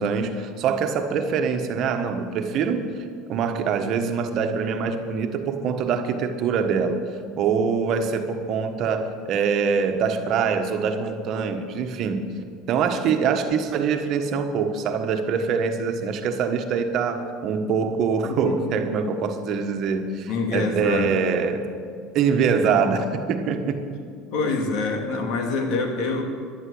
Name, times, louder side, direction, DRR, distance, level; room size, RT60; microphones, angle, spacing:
voice 1, 0.0-2.9 3.3-7.0 7.4-12.3 12.7-21.6 22.1-23.8, right 6 dB, 55° right, 6 dB, 1.4 m, -24 dB
voice 2, 18.2-18.7 20.3-21.2 24.3-26.2, left 3 dB, 65° left, 4 dB, 2.3 m, -26 dB
11.0 x 11.0 x 7.9 m, 2.2 s
supercardioid pair, 105°, 0 cm